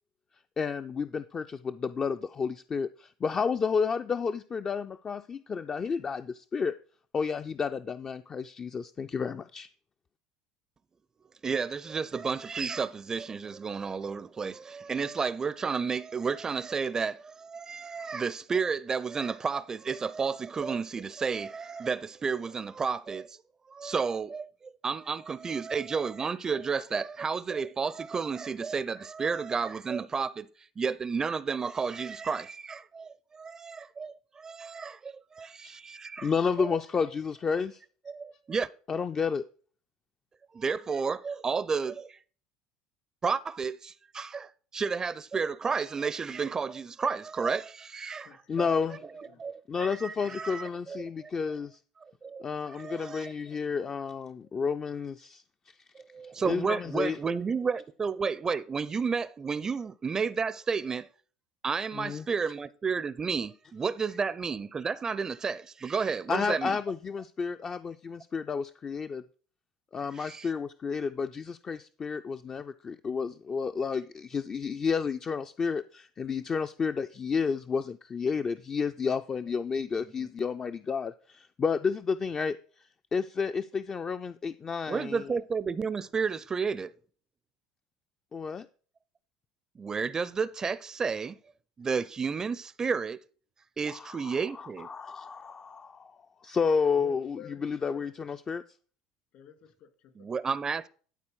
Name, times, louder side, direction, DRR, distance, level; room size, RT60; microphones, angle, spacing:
voice 1, 0.6-6.8 7.1-9.7 35.6-35.7 36.2-37.8 38.9-39.5 48.5-49.0 49.7-51.8 52.4-55.7 56.4-57.2 61.9-62.3 66.3-69.2 69.9-85.4 88.3-88.7 93.9-98.6, left 5 dB, 30° left, 0.4 m, -31 dB
voice 2, 11.4-23.4 23.7-30.5 30.8-36.3 36.6-36.7 38.1-38.7 40.5-42.2 43.2-48.3 48.6-48.7 49.4-51.3 52.2-52.4 52.7-53.3 56.1-61.1 61.6-66.8 70.1-70.5 84.9-86.9 89.8-91.4 91.8-93.2 93.8-94.9 100.2-100.9, right 5 dB, 25° right, 0.5 m, -32 dB
voice 3, 48.2-49.4 50.2-50.4 97.0-98.0 99.3-100.4, left 7 dB, 60° left, 2.4 m, -51 dB
11.5 x 4.3 x 6.3 m
hypercardioid pair, 75°, 2 cm